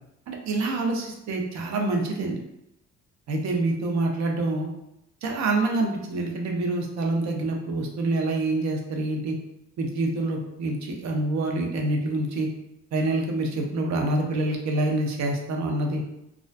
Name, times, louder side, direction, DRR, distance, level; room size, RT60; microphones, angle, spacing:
voice 1, 0.3-2.4 3.3-4.7 5.2-9.4 9.8-12.5 12.9-16.0, right 2 dB, 65° right, 1 dB, 0.6 m, -26 dB
2.4 x 2.1 x 2.4 m, 0.84 s
cardioid pair, 90°, 30 cm